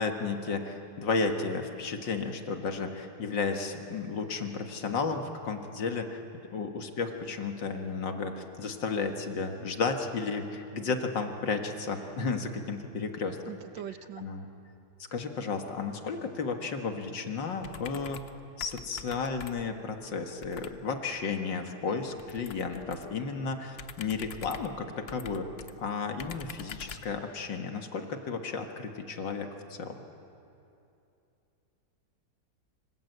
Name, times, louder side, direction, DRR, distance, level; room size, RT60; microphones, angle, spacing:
voice 1, 0.0-6.2 6.5-13.4 14.2-14.5 15.1-18.2 18.6-25.5 25.8-30.0, left 4 dB, 80° left, 5 dB, 2.5 m, -33 dB
voice 2, 13.5-14.3, right 10 dB, 85° right, 12 dB, 1.6 m, -41 dB
sound 1, 17.6-18.4 18.6-19.8 20.4-20.8 22.2-23.1 23.7-25.7 26.2-27.1, left 6 dB, 50° left, 0.8 m, -45 dB
26.0 x 26.0 x 8.1 m, 2.7 s
omnidirectional pair, 2.0 m